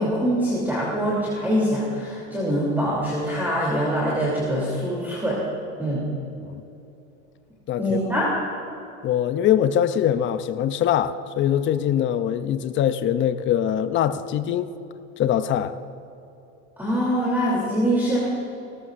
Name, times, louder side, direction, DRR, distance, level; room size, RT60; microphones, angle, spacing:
voice 1, 0.0-5.4 5.8-6.1 7.8-8.3 16.8-18.3, equal, 5° right, -6 dB, 3.0 m, -24 dB
voice 2, 7.7-8.0 9.0-14.7 15.2-15.7, left 10 dB, 35° left, 11 dB, 0.6 m, -23 dB
17.5 x 14.0 x 2.5 m, 2.8 s
supercardioid pair, 110°, 36 cm